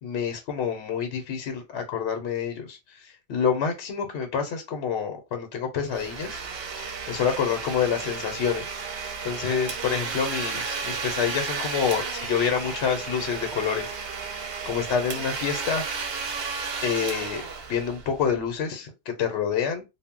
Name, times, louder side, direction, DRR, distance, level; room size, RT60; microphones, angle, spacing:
voice 1, 0.0-6.4 6.8-8.6 9.2-13.9 14.6-15.8 16.8-19.8, left 7 dB, 75° left, 0.9 m, -27 dB
Domestic sounds home sounds, 5.8-18.4, right 5 dB, 65° right, 0.7 m, -33 dB
2.0 x 2.0 x 3.5 m
omnidirectional pair, 1.2 m